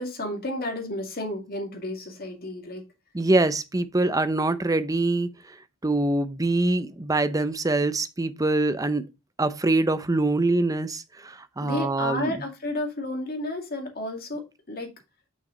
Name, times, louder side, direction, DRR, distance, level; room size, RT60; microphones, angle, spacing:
voice 1, 0.0-2.8 11.6-14.9, left 1 dB, 45° left, 2.2 m, -32 dB
voice 2, 3.1-5.3 5.8-9.0 9.4-12.4, right 2 dB, 15° right, 0.6 m, -24 dB
6.3 x 6.0 x 3.8 m
head